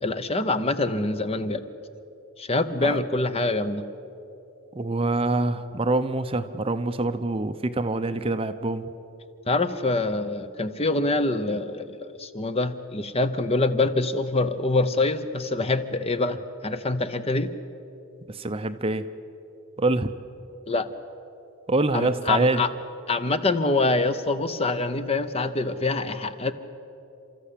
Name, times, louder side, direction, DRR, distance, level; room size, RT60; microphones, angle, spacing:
voice 1, 0.0-1.6 2.4-3.8 9.5-17.5 20.7-20.9 21.9-22.7 23.1-26.5, left 2 dB, 30° left, 11 dB, 0.8 m, -25 dB
voice 2, 4.7-8.9 18.3-19.0 19.8-20.1 21.7-22.6, right 2 dB, 25° right, 10 dB, 0.7 m, -25 dB
30.0 x 13.5 x 8.5 m, 2.9 s
head